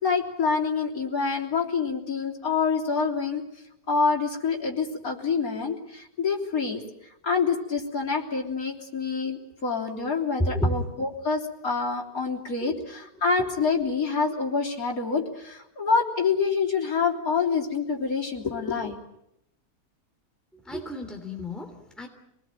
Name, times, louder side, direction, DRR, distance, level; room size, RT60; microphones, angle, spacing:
voice 1, 0.0-3.4 3.9-6.8 7.2-19.0, left 5 dB, 60° left, 0 dB, 4.0 m, -26 dB
voice 2, 10.4-10.8 12.6-12.8 13.4-13.5 20.6-22.1, equal, ahead, 4 dB, 3.1 m, -30 dB
27.0 x 19.5 x 9.1 m, 0.79 s
omnidirectional pair, 1.7 m